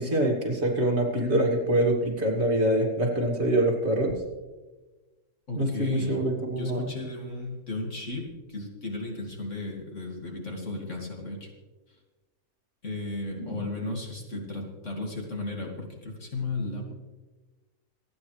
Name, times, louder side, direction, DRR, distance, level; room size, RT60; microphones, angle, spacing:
voice 1, 0.0-4.1 5.5-6.9 13.4-13.6, right 1 dB, 45° right, -1 dB, 2.7 m, -25 dB
voice 2, 5.5-6.2 6.5-11.5 12.8-16.9, left 2 dB, 55° left, 0 dB, 2.6 m, -35 dB
27.0 x 9.3 x 3.3 m, 1.2 s
omnidirectional pair, 1.6 m